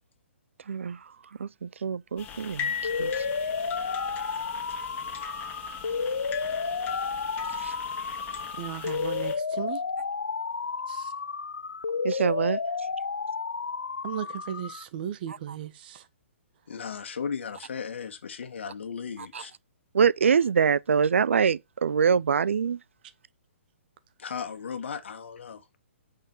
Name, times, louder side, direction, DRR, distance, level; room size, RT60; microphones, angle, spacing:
voice 1, 0.7-1.0 1.4-3.3 7.6-7.7 12.0-12.6 19.3-19.4 19.9-22.8, right 6 dB, 70° right, 0.4 m, -24 dB
sound 1, 2.2-9.3, left 7 dB, 25° left, 2.8 m, -38 dB
sound 2, 2.8-14.8, left 5 dB, 80° left, 0.5 m, -32 dB
voice 2, 8.6-9.8 10.9-11.1 14.0-16.1, right 10 dB, 45° right, 1.5 m, -36 dB
voice 3, 16.7-19.5 24.2-25.6, left 6 dB, 65° left, 2.0 m, -36 dB
6.4 x 5.7 x 7.2 m
figure-of-eight pair, 125°, 7 cm